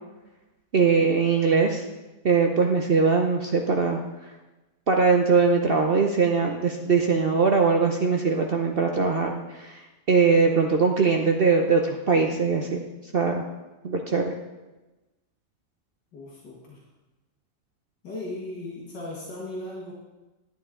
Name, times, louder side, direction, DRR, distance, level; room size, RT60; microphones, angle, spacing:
voice 1, 0.7-1.8 2.2-4.0 4.9-9.8 10.1-12.8 13.1-13.4 13.8-14.3, right 5 dB, 75° right, 2 dB, 0.5 m, -21 dB
voice 2, 16.1-16.8 18.0-19.9, left 1 dB, 70° left, -4 dB, 2.3 m, -37 dB
11.0 x 9.2 x 3.7 m, 1.1 s
omnidirectional pair, 1.9 m